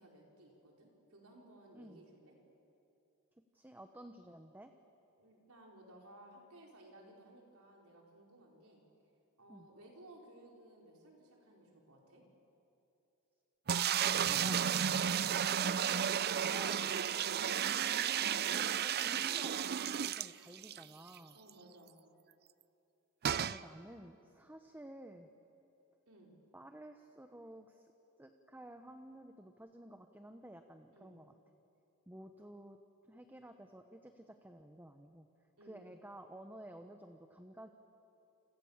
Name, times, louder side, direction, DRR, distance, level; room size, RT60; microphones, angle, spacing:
voice 1, 0.0-2.3 5.2-8.8 9.4-12.2 17.0-17.4 21.3-22.0 26.1-26.4 30.9-31.2 35.6-35.9, right 1 dB, 70° right, -1 dB, 4.8 m, -58 dB
voice 2, 3.5-4.7 9.5-9.7 14.0-16.9 17.6-21.4 23.4-25.3 26.5-27.9 28.2-31.3 32.1-32.8 33.1-35.3 35.6-37.7, right 1 dB, 10° right, 6 dB, 1.0 m, -53 dB
sound 1, 13.7-20.8 21.2-21.3 21.5-21.6 23.2-23.6, right 8 dB, 45° right, 0.5 m, -33 dB
29.0 x 27.0 x 7.4 m, 2.8 s
head